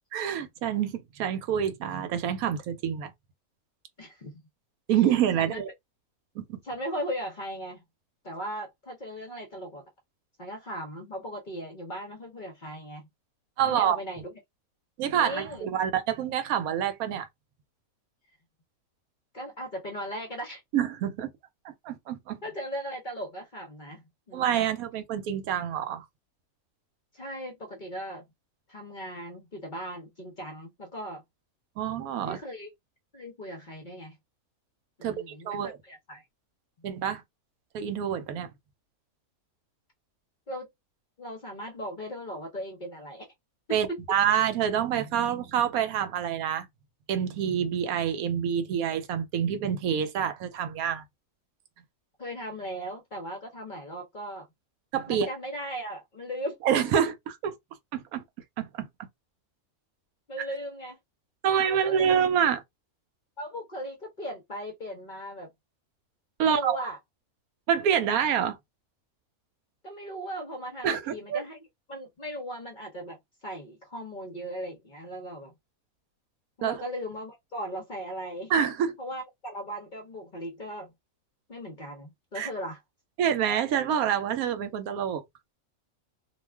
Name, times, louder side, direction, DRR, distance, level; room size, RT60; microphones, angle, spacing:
voice 1, 0.1-3.1 4.9-5.7 6.4-6.6 13.6-14.0 15.0-17.3 20.7-21.3 21.6-22.4 24.3-26.0 31.8-32.4 35.0-35.1 35.4-35.8 36.8-37.2 37.7-38.5 43.7-46.7 47.1-51.0 54.9-55.3 56.6-57.5 57.9-58.2 58.6-59.1 61.4-62.6 66.4-66.8 67.7-68.6 70.8-71.4 76.6-76.8 78.5-79.0 82.4-82.5 83.2-85.2, right 9 dB, 80° right, 1.1 m, -27 dB
voice 2, 4.0-4.4 5.3-5.6 6.6-7.8 8.2-9.8 10.4-13.1 13.6-14.3 15.1-15.7 19.3-20.6 22.4-24.7 27.1-28.2 28.7-31.2 32.2-32.7 33.1-34.2 35.0-36.2 40.5-40.7 41.2-43.3 43.7-43.8 52.2-54.5 55.1-56.6 60.3-61.0 61.5-62.1 63.4-65.5 66.4-67.0 69.8-71.6 71.9-75.5 76.6-78.5 79.0-80.9 81.5-82.8, equal, 45° left, 0.7 m, -38 dB
2.4 x 2.3 x 3.3 m
omnidirectional pair, 1.5 m